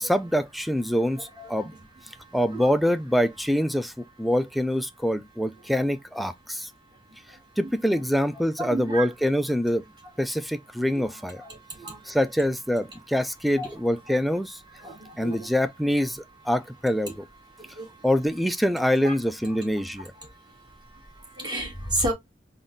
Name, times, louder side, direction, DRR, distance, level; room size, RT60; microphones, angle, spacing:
voice 1, 0.0-1.7 2.3-6.7 7.6-9.8 10.2-11.4 12.1-14.6 15.2-17.2 18.0-20.1, equal, ahead, 0.3 m, -25 dB
voice 2, 1.4-2.7 6.9-7.4 8.6-9.1 10.9-12.2 13.6-13.7 14.7-15.5 17.0-17.1 17.5-18.1 19.0-19.1 19.5-19.6 20.0-22.1, right 1 dB, 25° right, 1.7 m, -34 dB
3.8 x 2.3 x 3.7 m
head